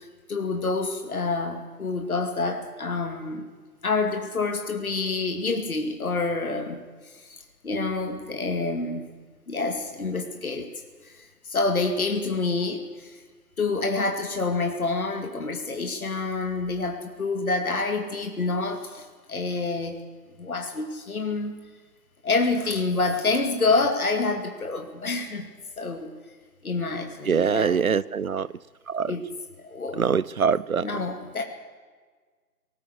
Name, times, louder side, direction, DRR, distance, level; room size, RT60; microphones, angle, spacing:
voice 1, 0.0-3.5 3.8-6.8 7.1-9.1 9.5-10.7 11.0-13.2 13.6-20.0 20.4-21.5 22.2-25.5 25.8-26.1 26.6-27.8 29.0-29.3 29.6-30.0 30.8-31.4, left 3 dB, 60° left, 5 dB, 2.5 m, -27 dB
voice 2, 27.3-28.5 28.9-29.1 30.0-30.9, right 6 dB, 55° right, 21 dB, 0.7 m, -23 dB
19.5 x 19.0 x 8.4 m, 1.5 s
figure-of-eight pair, 165°, 50 cm